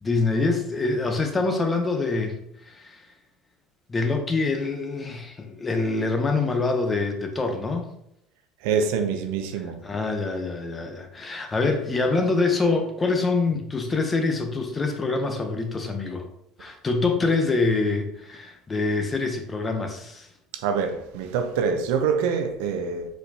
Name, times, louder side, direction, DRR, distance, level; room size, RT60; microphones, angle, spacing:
voice 1, 0.0-3.1 3.9-7.9 9.5-16.3 16.6-20.3, left 3 dB, 20° left, 0.8 m, -25 dB
voice 2, 8.6-9.8 20.6-23.1, right 6 dB, 80° right, 0.6 m, -25 dB
4.5 x 4.3 x 2.8 m
supercardioid pair, 110°, 0 cm